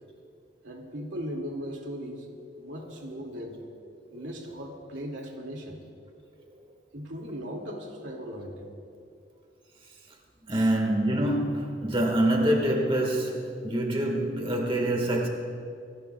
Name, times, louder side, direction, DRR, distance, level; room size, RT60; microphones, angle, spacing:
voice 1, 0.6-3.6 4.1-5.8 6.9-8.7 10.5-10.7, equal, 80° right, 1 dB, 2.3 m, -38 dB
voice 2, 10.5-15.3, right 1 dB, 30° right, 2 dB, 1.6 m, -25 dB
27.5 x 17.5 x 2.3 m, 2.5 s
head